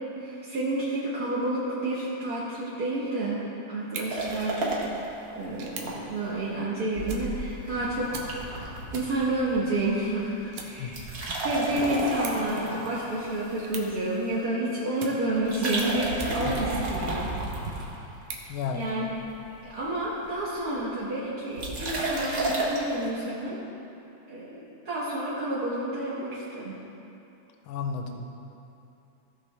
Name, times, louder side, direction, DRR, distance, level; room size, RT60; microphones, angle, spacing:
voice 1, 0.1-3.4 3.7-4.8 5.3-8.6 8.9-11.0 11.4-17.3 17.7-17.8 18.7-19.1 19.6-23.6 24.3-26.7, right 1 dB, 50° right, -9 dB, 1.1 m, -30 dB
sound 1, 3.8-16.8 17.3-19.3, right 5 dB, 90° right, 2.3 m, -46 dB
sound 2, 4.1-5.9 6.3-6.4 6.9-9.8 10.1-10.4 10.8-14.2 15.4-18.3 18.8-19.3 19.6-19.7 19.9-20.5 21.6-22.9, right 2 dB, 70° right, 0.8 m, -32 dB
voice 2, 18.5-18.9 27.7-28.3, left 6 dB, 75° left, 4 dB, 1.6 m, -32 dB
15.5 x 5.9 x 3.4 m, 2.8 s
omnidirectional pair, 3.4 m